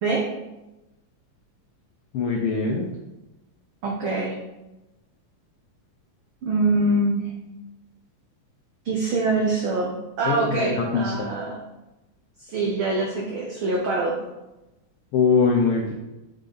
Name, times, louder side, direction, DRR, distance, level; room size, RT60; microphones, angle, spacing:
voice 1, 2.1-2.9 10.2-11.3 15.1-15.9, left 4 dB, 85° left, 0 dB, 1.2 m, -22 dB
voice 2, 3.8-4.4 6.4-7.3 8.8-11.6 12.4-14.2, right 2 dB, 85° right, -2 dB, 1.1 m, -24 dB
5.6 x 5.1 x 3.8 m, 1.0 s
omnidirectional pair, 3.4 m